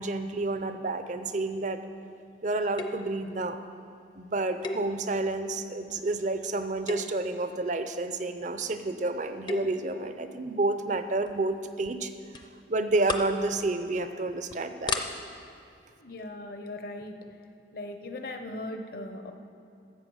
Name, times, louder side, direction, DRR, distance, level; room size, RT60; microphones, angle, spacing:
voice 1, 0.0-1.8 2.4-3.6 4.2-12.1 12.7-15.0, right 2 dB, 45° right, 10 dB, 0.6 m, -30 dB
sound 1, 2.8-3.2 4.6-5.3 5.9-6.2 6.7-7.3 9.2-9.8 11.3-11.5 11.8-11.9 12.3-12.5 12.8-13.4 13.8-14.0 14.5-14.6 14.9-15.0, left 3 dB, 25° left, 0.6 m, -34 dB
voice 2, 16.0-17.2 17.7-19.3, left 1 dB, 55° left, 6 dB, 0.9 m, -38 dB
13.0 x 7.8 x 6.4 m, 2.4 s
head